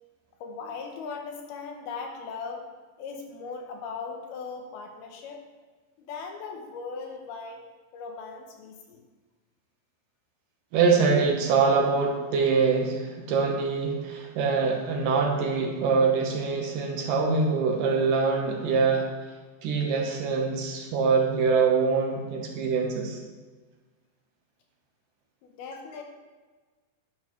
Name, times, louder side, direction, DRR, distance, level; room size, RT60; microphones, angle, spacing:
voice 1, 0.4-2.7 3.0-5.4 6.0-7.6 7.9-9.0 25.4-26.0, left 5 dB, 75° left, 3 dB, 2.6 m, -38 dB
voice 2, 10.7-19.1 19.6-23.2, right 5 dB, 65° right, 1 dB, 2.4 m, -24 dB
11.0 x 11.0 x 3.2 m, 1.3 s
omnidirectional pair, 5.0 m